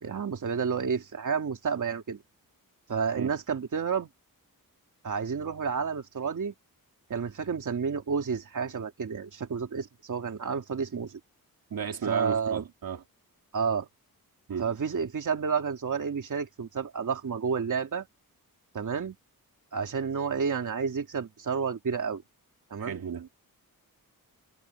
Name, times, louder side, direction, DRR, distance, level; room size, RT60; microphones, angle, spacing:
voice 1, 0.0-2.2 2.9-4.1 5.0-6.5 7.1-11.2 12.1-12.6 13.5-13.9 14.6-18.1 18.7-19.2 19.7-22.2 22.7-23.0, right 6 dB, 55° right, 2.7 m, -30 dB
voice 2, 11.7-13.0 14.5-14.7 22.8-23.3, right 7 dB, 75° right, 2.8 m, -34 dB
wide cardioid pair, 155°, 36 cm